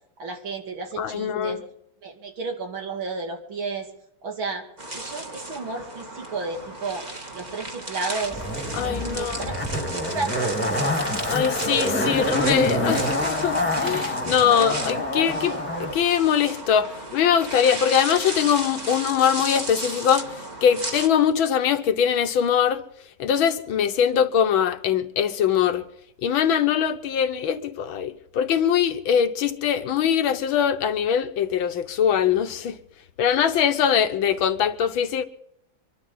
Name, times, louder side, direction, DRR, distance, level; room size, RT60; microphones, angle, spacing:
voice 1, 0.2-1.6 2.0-3.9 4.2-4.6 4.9-8.4 8.8-9.9 10.1-10.5, right 4 dB, 85° right, 3.4 m, -32 dB
voice 2, 1.0-1.6 8.7-9.5 11.3-22.8 23.2-25.8 26.2-32.8 33.2-35.2, left 8 dB, 90° left, 1.9 m, -22 dB
sound 1, 4.8-21.1, right 2 dB, 25° right, 1.6 m, -34 dB
Zipper (clothing), 8.3-16.0 16.2-16.3, left 1 dB, 5° left, 1.7 m, -26 dB
25.0 x 12.5 x 4.0 m
omnidirectional pair, 2.1 m